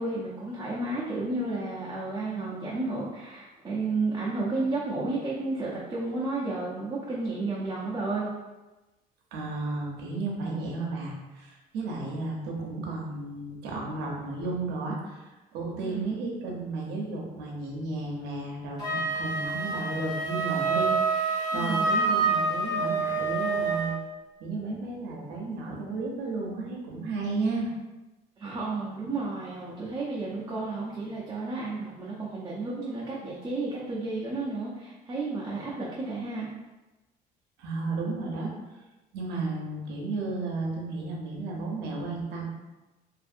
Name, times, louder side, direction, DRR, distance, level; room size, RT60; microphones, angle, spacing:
voice 1, 0.0-8.3 15.8-16.2 21.5-21.9 28.4-36.5, right 3 dB, 25° right, -7 dB, 0.5 m, -32 dB
voice 2, 9.3-23.9 24.4-27.7 37.6-38.5 39.1-42.4, right 3 dB, 90° right, -1 dB, 0.7 m, -33 dB
Wind instrument woodwind instrument, 18.8-24.0, right 3 dB, 25° left, 1.3 m, -27 dB
2.6 x 2.6 x 2.5 m, 1.1 s
cardioid pair, 110°, 17 cm